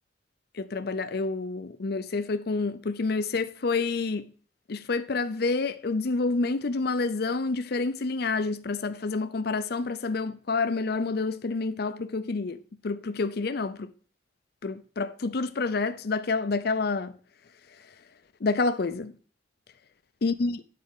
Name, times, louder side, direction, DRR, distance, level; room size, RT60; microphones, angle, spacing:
voice 1, 0.5-4.3 4.7-12.6 12.8-13.9 14.6-17.1 18.4-19.1 20.2-20.6, left 3 dB, 55° left, 0.5 m, -28 dB
9.4 x 4.2 x 6.4 m
head